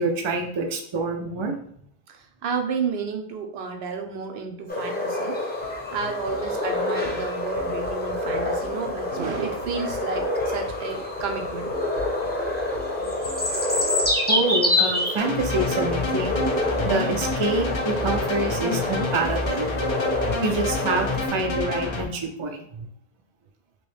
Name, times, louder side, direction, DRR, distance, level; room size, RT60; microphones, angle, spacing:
voice 1, 0.0-1.6 14.3-16.4 16.8-19.7 20.4-22.9, right 3 dB, 45° right, 3 dB, 0.3 m, -26 dB
voice 2, 2.1-5.4 5.9-11.7, right 5 dB, 75° right, 4 dB, 0.8 m, -31 dB
sound 1, 4.7-21.3, left 1 dB, 10° left, 0.7 m, -27 dB
sound 2, 5.6-14.3, left 3 dB, 65° left, 0.7 m, -38 dB
sound 3, 15.2-22.0, left 2 dB, 45° left, 0.4 m, -28 dB
3.0 x 2.9 x 3.2 m, 0.63 s
omnidirectional pair, 1.1 m